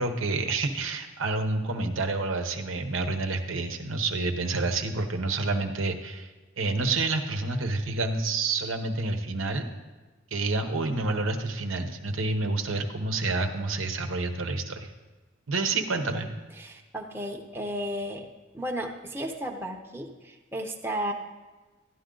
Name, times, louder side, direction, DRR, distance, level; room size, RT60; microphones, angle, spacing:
voice 1, 0.0-6.3 6.6-9.7 10.3-14.9 15.5-16.3, right 3 dB, 85° right, 5 dB, 1.0 m, -28 dB
voice 2, 16.6-18.3 18.5-21.1, equal, 10° right, 1 dB, 0.7 m, -34 dB
12.5 x 10.5 x 3.8 m, 1.3 s
head